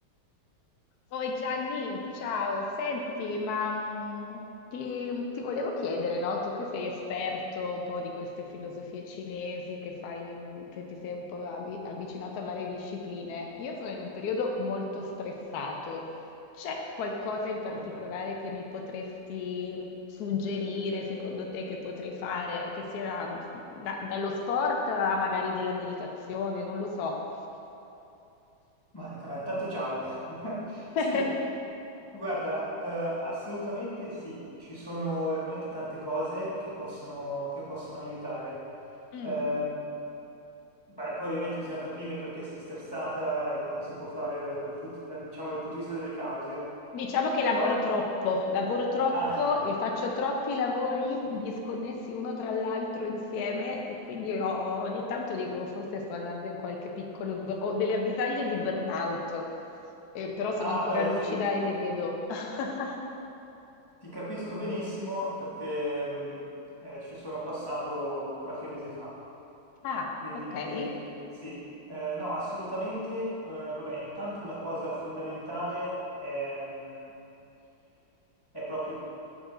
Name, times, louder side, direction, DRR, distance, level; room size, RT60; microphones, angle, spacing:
voice 1, 1.1-4.4 4.7-16.1 16.6-23.4 23.7-27.2 31.0-31.3 39.1-39.4 46.9-59.4 60.1-63.0 69.8-70.9, left 3 dB, 70° left, 1 dB, 0.9 m, -32 dB
voice 2, 17.7-18.0 28.9-31.3 32.1-38.6 39.2-39.8 41.0-46.7 47.5-47.7 49.1-49.4 60.6-61.4 64.0-66.5 66.8-69.2 70.2-77.1 78.5-79.0, equal, 30° left, -8 dB, 0.4 m, -34 dB
7.6 x 5.0 x 3.7 m, 2.8 s
omnidirectional pair, 2.3 m